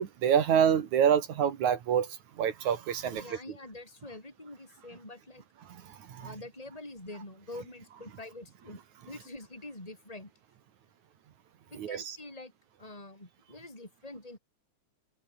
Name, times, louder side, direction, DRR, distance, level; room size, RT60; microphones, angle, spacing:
voice 1, 0.0-3.4 5.6-6.4 11.7-12.2, right 8 dB, 70° right, 3.0 m, -27 dB
voice 2, 3.1-5.4 6.2-8.8 9.1-10.3 11.7-12.5 12.8-14.4, left 2 dB, 10° left, 6.5 m, -46 dB
omnidirectional pair, 3.6 m